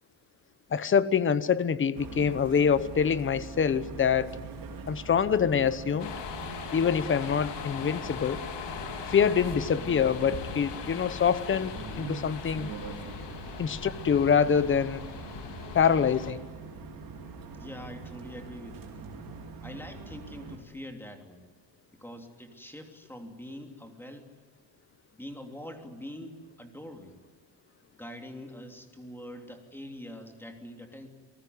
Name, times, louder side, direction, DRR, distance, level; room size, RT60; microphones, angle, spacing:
voice 1, 0.7-4.3 4.9-6.1 6.7-8.4 9.1-12.7 13.6-15.0 15.7-16.4, left 7 dB, 25° left, 15 dB, 0.9 m, -25 dB
sound 1, 1.9-20.6, right 4 dB, 45° right, 4.8 m, -43 dB
sound 2, 6.0-16.3, left 7 dB, 60° left, 3.7 m, -40 dB
voice 2, 17.6-19.0 19.6-21.4 22.0-24.3 25.1-27.1 27.9-31.1, equal, 5° left, 4 dB, 2.9 m, -44 dB
29.5 x 19.0 x 9.5 m, 1.4 s
cardioid pair, 155°, 48 cm